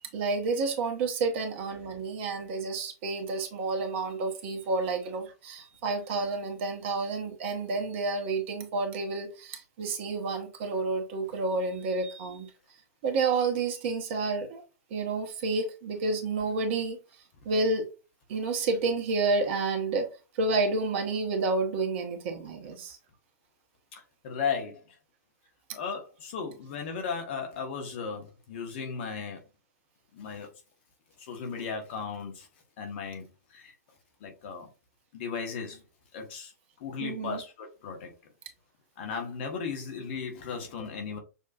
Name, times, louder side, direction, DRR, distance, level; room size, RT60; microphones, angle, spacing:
voice 1, 0.1-12.5 13.0-14.6 14.9-17.0 17.4-17.9 18.3-20.1 20.3-23.0 37.0-37.4, right 3 dB, 45° right, 1.1 m, -30 dB
voice 2, 23.9-25.0 25.7-29.4 30.1-30.5 31.2-32.5 32.8-33.7 34.2-34.7 35.1-35.8 36.1-36.5 36.8-38.1 39.0-41.2, left 6 dB, 45° left, 1.2 m, -36 dB
6.5 x 2.5 x 2.4 m
figure-of-eight pair, 105°, 9 cm